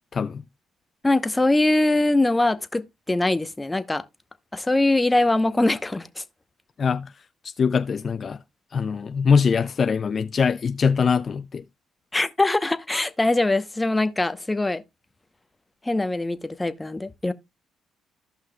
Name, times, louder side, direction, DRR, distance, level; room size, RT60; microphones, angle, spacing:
voice 1, 0.1-0.4 6.8-7.1 7.6-8.4 8.7-11.6, left 6 dB, 45° left, 0.4 m, -22 dB
voice 2, 1.0-4.0 4.5-6.2 12.1-14.8 15.8-17.3, left 2 dB, 15° left, 0.8 m, -22 dB
14.5 x 5.6 x 2.2 m
supercardioid pair, 70°, 0 cm